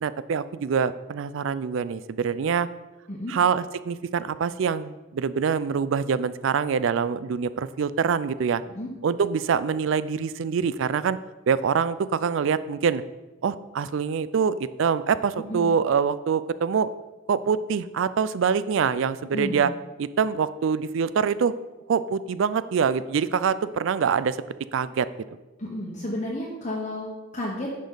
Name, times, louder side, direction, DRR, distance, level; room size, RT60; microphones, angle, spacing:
voice 1, 0.0-2.7 3.3-8.6 9.0-11.2 11.5-13.0 13.4-16.9 17.3-19.7 20.0-21.5 21.9-24.4 24.7-25.1, right 6 dB, 70° right, 15 dB, 0.3 m, -25 dB
voice 2, 19.3-19.7 25.6-27.7, left 1 dB, 35° left, -3 dB, 1.1 m, -32 dB
10.5 x 5.2 x 3.9 m, 1.2 s
head